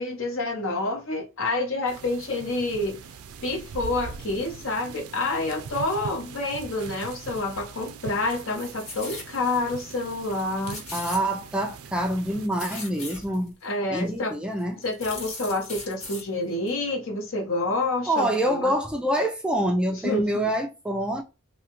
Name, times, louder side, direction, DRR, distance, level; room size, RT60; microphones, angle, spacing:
voice 1, 0.0-3.0 3.4-10.8 13.6-14.3 14.8-18.7 20.0-20.2, left 2 dB, 65° left, 0.8 m, -28 dB
sound 1, 1.9-12.5, right 5 dB, 80° right, 0.4 m, -41 dB
sound 2, 8.3-9.3 9.8-9.9 10.1-10.4 10.6-11.7 12.1-13.5 14.1-14.2 14.6-16.2 16.7-16.8, left 3 dB, 85° left, 1.6 m, -39 dB
voice 2, 10.9-13.5 13.9-14.8 18.1-21.2, right 1 dB, 5° right, 0.3 m, -26 dB
2.8 x 2.3 x 2.8 m
head